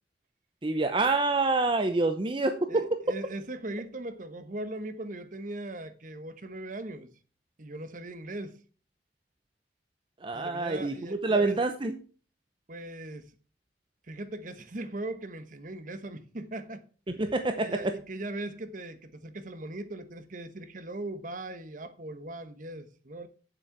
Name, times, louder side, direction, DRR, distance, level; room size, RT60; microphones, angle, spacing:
voice 1, 0.6-2.9 10.2-12.0 17.2-17.9, right 3 dB, 30° right, 0.7 m, -27 dB
voice 2, 2.7-7.1 7.6-8.6 10.3-11.6 12.7-13.3 14.1-16.8 17.6-23.3, right 2 dB, 45° right, 1.1 m, -39 dB
9.2 x 7.7 x 4.6 m
head